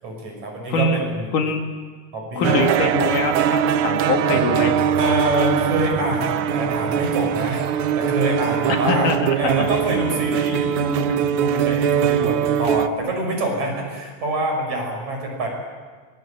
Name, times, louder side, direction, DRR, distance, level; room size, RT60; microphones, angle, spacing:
voice 1, 0.0-1.3 2.1-2.7 5.0-7.6 8.0-15.5, right 1 dB, 60° right, 2 dB, 6.9 m, -25 dB
voice 2, 0.7-1.0 1.3-1.6 2.4-4.8 8.7-9.2 9.6-9.7, left 3 dB, 80° left, 4 dB, 3.6 m, -23 dB
sound 1, 2.4-12.9, right 9 dB, 85° right, 1.2 m, -21 dB
24.0 x 21.5 x 8.8 m, 1.5 s
omnidirectional pair, 3.6 m